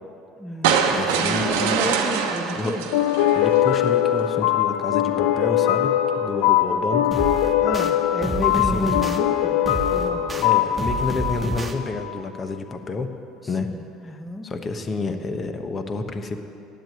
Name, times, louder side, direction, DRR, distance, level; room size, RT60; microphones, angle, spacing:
voice 1, 0.4-2.9 7.6-9.6 9.9-10.3 13.7-14.5, left 1 dB, 5° left, 6 dB, 1.0 m, -31 dB
sound 1, 0.6-3.9, right 6 dB, 85° right, 1.0 m, -24 dB
voice 2, 0.9-1.9 2.6-2.7 3.3-7.0 8.5-8.9 10.4-13.1 13.5-13.7 14.1-16.4, left 3 dB, 35° left, 7 dB, 1.0 m, -29 dB
sound 2, 2.9-12.2, left 11 dB, 80° left, 0.4 m, -21 dB
sound 3, 7.1-7.9 8.2-9.2 9.6-10.5 10.8-11.7, right 2 dB, 20° right, 1.3 m, -29 dB
9.2 x 7.8 x 9.1 m, 2.6 s
supercardioid pair, 90°, 0 cm